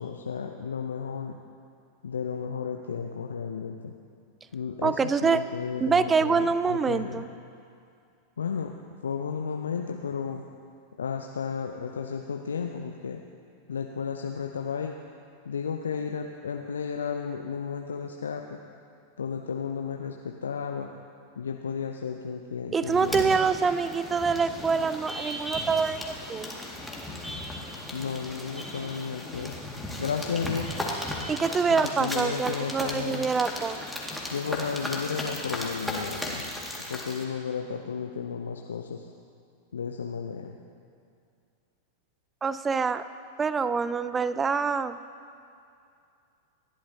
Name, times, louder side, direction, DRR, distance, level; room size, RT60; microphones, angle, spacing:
voice 1, 0.0-1.4 2.0-3.9 4.5-7.2 8.4-8.7 9.0-10.4 11.0-13.2 13.7-15.0 15.5-18.6 19.2-20.9 21.4-23.3 27.9-29.6 30.0-30.7 31.7-33.3 34.3-36.4 36.9-39.0 39.7-40.6, left 6 dB, 70° left, 3 dB, 0.7 m, -33 dB
voice 2, 4.8-5.4 5.8-7.3 22.7-26.5 31.3-33.8 42.4-43.0 43.4-45.0, right 5 dB, 15° right, 13 dB, 0.5 m, -25 dB
sound 1, 22.8-37.2, left 1 dB, ahead, 2.1 m, -36 dB
28.5 x 11.5 x 2.9 m, 2.4 s
figure-of-eight pair, 90°, 0 cm